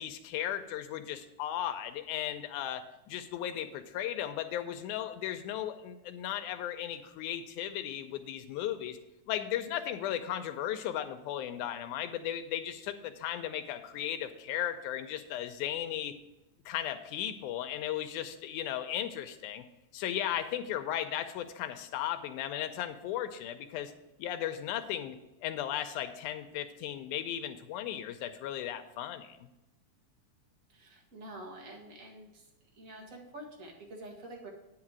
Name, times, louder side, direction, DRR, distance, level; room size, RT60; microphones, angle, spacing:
voice 1, 0.0-9.0 9.3-16.1 16.7-19.6 19.9-23.9 24.2-29.5, left 11 dB, 90° left, 7 dB, 2.1 m, -36 dB
voice 2, 30.7-32.5 32.7-34.5, right 1 dB, 30° right, 0 dB, 1.7 m, -47 dB
9.5 x 4.9 x 7.4 m, 0.95 s
omnidirectional pair, 3.5 m